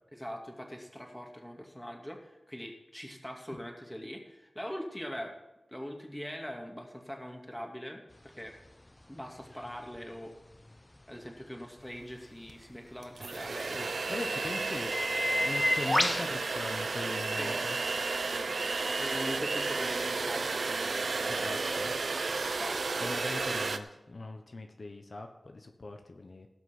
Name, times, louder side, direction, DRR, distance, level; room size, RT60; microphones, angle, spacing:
voice 1, 0.1-5.3 5.7-8.6 9.1-10.3 11.1-13.8 17.3-17.6 18.2-21.7 22.4-22.8, equal, 10° left, 2 dB, 2.5 m, -42 dB
sound 1, 8.1-17.4 17.8-23.7, left 1 dB, 30° left, 0.8 m, -37 dB
sound 2, 12.5-12.6 13.0-23.8, right 3 dB, 85° right, 0.8 m, -32 dB
voice 2, 13.7-14.9 15.4-17.8 21.3-22.0 23.0-26.5, left 2 dB, 60° left, 5 dB, 1.0 m, -41 dB
18.0 x 6.0 x 6.0 m, 0.99 s
wide cardioid pair, 60°, 0 cm